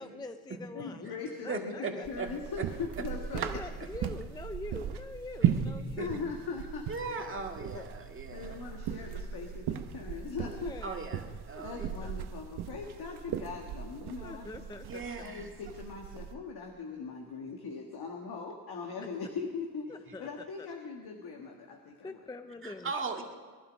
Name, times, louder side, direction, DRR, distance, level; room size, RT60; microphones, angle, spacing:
voice 1, 0.0-1.1 1.4-2.1 3.3-6.2 7.2-7.3 7.6-7.9 10.4-11.2 11.6-12.1 14.2-15.3 19.9-20.3 20.6-20.7 22.0-22.9, left 2 dB, 10° left, 9 dB, 0.4 m, -45 dB
voice 2, 0.7-3.6 6.0-6.9 8.3-10.7 11.6-14.5 15.2-19.9 20.2-22.2, left 5 dB, 70° left, 1 dB, 1.7 m, -40 dB
voice 3, 1.5-2.3 5.4-5.5 6.0-6.1 6.9-8.6 10.8-12.0 14.8-15.5 22.6-23.2, right 4 dB, 30° right, 2 dB, 1.9 m, -38 dB
sound 1, 2.0-16.3, right 9 dB, 75° right, 1.0 m, -37 dB
21.5 x 11.5 x 5.3 m, 1.5 s
cardioid pair, 110°, 40 cm